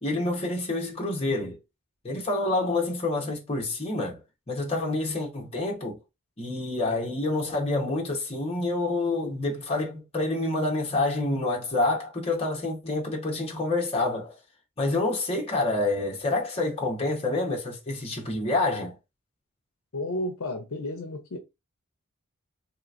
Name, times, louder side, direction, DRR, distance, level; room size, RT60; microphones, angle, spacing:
voice 1, 0.0-1.6 2.0-4.2 4.5-6.0 6.4-14.4 14.8-18.9, left 2 dB, 25° left, 0.9 m, -27 dB
voice 2, 19.9-21.4, left 1 dB, 65° left, 0.6 m, -32 dB
3.2 x 2.8 x 2.5 m
head